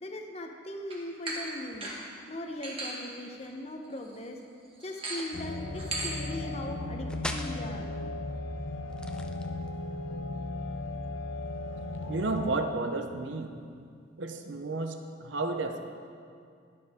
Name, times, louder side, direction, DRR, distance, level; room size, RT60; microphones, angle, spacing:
voice 1, 0.0-1.9 2.3-4.4 4.8-7.9, left 1 dB, 30° left, 3 dB, 0.9 m, -39 dB
sound 1, 0.9-1.0 1.3-1.5 1.8-2.1 2.6-2.9 3.4-3.5 3.8-4.1 4.8-5.3 5.7-6.1, right 2 dB, 25° right, 1.7 m, -36 dB
sound 2, 5.0-5.5 7.1-7.6 8.9-9.8, left 1 dB, 5° left, 0.4 m, -39 dB
sound 3, 5.3-12.6, left 2 dB, 70° left, 0.7 m, -36 dB
voice 2, 12.1-13.5 14.2-15.8, right 3 dB, 65° right, 6 dB, 0.8 m, -32 dB
20.5 x 7.0 x 3.6 m, 2.3 s
head